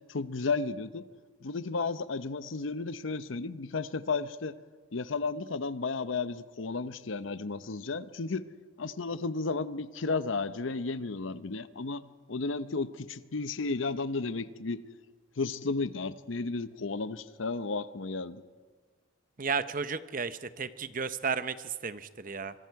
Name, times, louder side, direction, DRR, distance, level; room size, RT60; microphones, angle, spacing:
voice 1, 0.1-1.0 1.4-4.6 4.9-8.4 8.8-14.8 15.4-18.4, left 4 dB, 75° left, 14 dB, 0.8 m, -33 dB
voice 2, 19.4-22.5, right 5 dB, 45° right, 12 dB, 0.8 m, -33 dB
25.5 x 22.0 x 4.7 m, 1.5 s
head